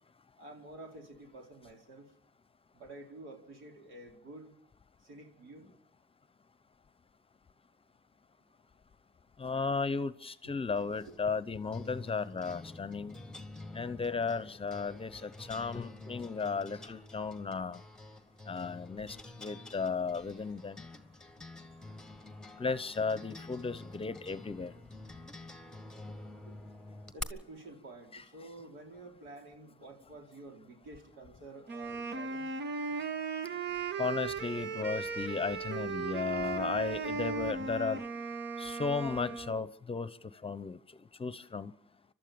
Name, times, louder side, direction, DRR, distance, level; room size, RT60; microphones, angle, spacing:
voice 1, 0.4-2.1 2.7-4.5 5.0-5.7 11.1-11.2 26.5-26.6 27.1-32.5, right 2 dB, 80° right, 2 dB, 4.2 m, -50 dB
voice 2, 9.4-13.2 13.7-17.8 18.5-20.8 22.6-24.7 28.1-28.2 34.0-38.0 38.6-40.1 40.4-40.8 41.2-41.7, left 4 dB, 30° left, 15 dB, 0.9 m, -35 dB
sound 1, 10.8-27.2, left 2 dB, 5° left, 1.5 m, -48 dB
Wind instrument woodwind instrument, 31.7-39.6, right 5 dB, 60° right, 1.6 m, -37 dB
29.5 x 12.5 x 7.0 m, 0.74 s
cardioid pair, 90°, 20 cm